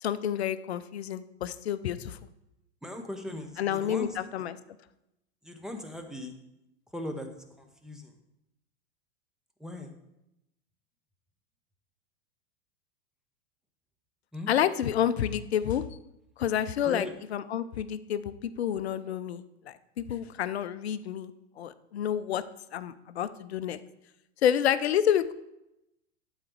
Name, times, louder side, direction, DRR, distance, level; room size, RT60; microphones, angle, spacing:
voice 1, 0.0-2.2 3.6-4.5 14.5-15.9 16.4-22.4 22.7-23.8 24.4-25.3, left 10 dB, 65° left, 14 dB, 0.6 m, -29 dB
voice 2, 2.8-4.1 5.4-6.3 6.9-7.3 7.6-8.2 9.6-9.9 14.3-14.5 16.9-17.1, left 1 dB, ahead, 4 dB, 0.9 m, -39 dB
12.0 x 4.1 x 4.6 m, 0.87 s
figure-of-eight pair, 95°, 35 cm